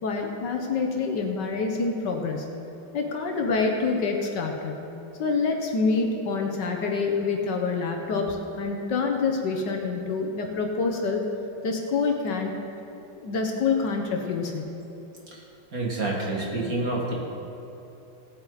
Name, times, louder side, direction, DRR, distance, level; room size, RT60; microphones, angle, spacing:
voice 1, 0.0-2.5 2.9-4.8 5.2-11.2 11.6-12.6 13.2-14.6, left 4 dB, 65° left, 2 dB, 1.5 m, -26 dB
voice 2, 15.7-17.1, right 2 dB, 45° right, -3 dB, 2.3 m, -28 dB
18.0 x 8.5 x 4.1 m, 2.9 s
omnidirectional pair, 2.2 m